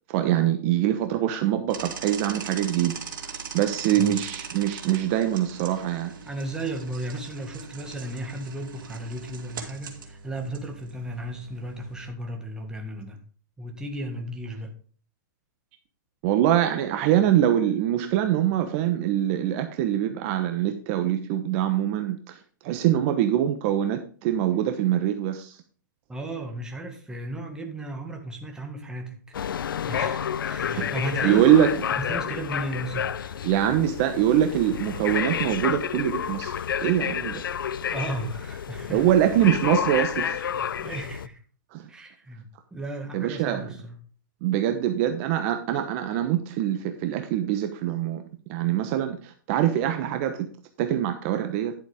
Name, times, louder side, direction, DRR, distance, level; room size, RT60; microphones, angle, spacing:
voice 1, 0.1-3.0 3.5-6.1 16.2-22.4 22.6-25.6 30.8-30.9 31.2-31.7 33.4-37.4 38.9-40.4 41.7-41.9 43.1-43.7 44.4-48.2 48.5-50.5 50.8-51.7, right 11 dB, 40° right, 7 dB, 1.0 m, -24 dB
sound 1, 1.7-12.1, right 5 dB, 70° right, 2.7 m, -40 dB
voice 2, 6.3-13.2 13.6-14.7 26.1-29.2 29.4-31.4 32.0-33.5 37.9-39.1 40.3-41.4 41.9-44.0, right 1 dB, 5° right, 2 dB, 1.8 m, -35 dB
sound 2, 29.3-41.3, left 8 dB, 85° left, 0.6 m, -30 dB
11.0 x 7.3 x 3.5 m, 0.42 s
hypercardioid pair, 150°, 11 cm